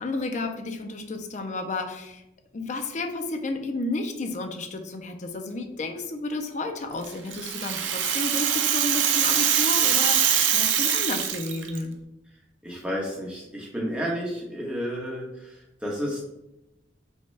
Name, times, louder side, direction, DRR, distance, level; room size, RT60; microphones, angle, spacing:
voice 1, 0.0-2.2 2.5-11.9, left 2 dB, 40° left, 5 dB, 0.4 m, -32 dB
Rattle (instrument), 7.0-11.8, right 9 dB, 80° right, 0.5 m, -23 dB
voice 2, 12.6-16.2, equal, 5° right, -3 dB, 0.9 m, -31 dB
5.3 x 2.2 x 3.2 m, 0.90 s
head